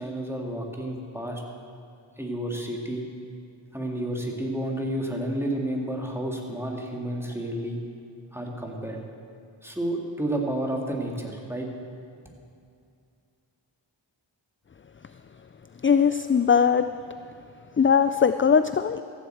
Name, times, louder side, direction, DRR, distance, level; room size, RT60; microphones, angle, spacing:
voice 1, 0.0-1.4 2.2-3.1 3.7-7.8 8.3-9.0 9.6-11.7, right 1 dB, 5° right, 0 dB, 2.2 m, -30 dB
voice 2, 15.8-16.9 17.8-19.0, left 6 dB, 30° left, 11 dB, 0.3 m, -20 dB
14.5 x 7.9 x 7.8 m, 2.4 s
wide cardioid pair, 40°, 50 cm